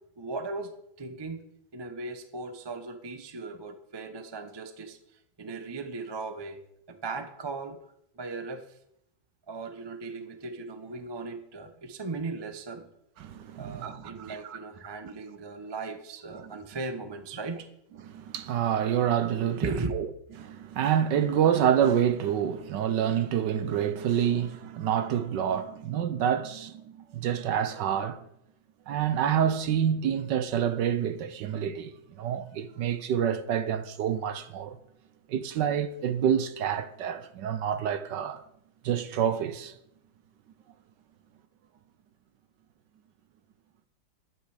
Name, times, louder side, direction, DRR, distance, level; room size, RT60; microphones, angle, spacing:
voice 1, 0.2-0.7 1.0-1.4 1.7-5.0 5.4-6.6 6.9-7.8 8.1-8.6 9.5-12.9 13.6-17.7 19.6-19.9, right 3 dB, 30° right, 0.5 m, -37 dB
voice 2, 13.2-14.6 15.0-15.2 16.4-16.5 18.0-20.1 20.4-28.2 28.9-34.8 35.3-38.4 38.8-39.7, right 9 dB, 70° right, 1.3 m, -27 dB
11.5 x 9.3 x 4.9 m
omnidirectional pair, 2.2 m